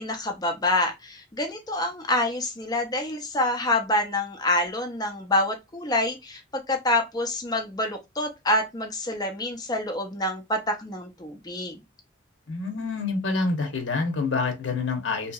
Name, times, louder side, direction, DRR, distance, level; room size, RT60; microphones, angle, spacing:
voice 1, 0.0-11.8, left 1 dB, 20° left, 0.5 m, -27 dB
voice 2, 12.5-15.3, left 3 dB, 80° left, 0.8 m, -27 dB
2.8 x 2.7 x 2.3 m
head